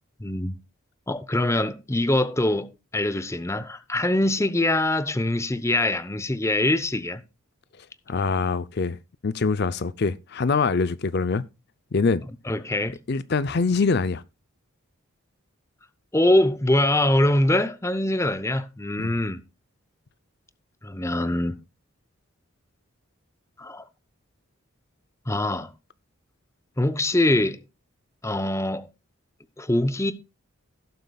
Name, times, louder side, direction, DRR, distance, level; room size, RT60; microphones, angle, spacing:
voice 1, 0.2-0.6 1.1-7.2 12.5-13.0 16.1-19.4 20.8-21.6 23.6-23.9 25.3-25.7 26.8-27.6 28.2-28.9 29.6-30.1, left 1 dB, 15° left, 0.7 m, -23 dB
voice 2, 7.8-9.0 9.2-11.4 11.9-12.2 13.1-14.2 19.0-19.1, left 4 dB, 50° left, 0.5 m, -24 dB
17.0 x 7.6 x 2.3 m
head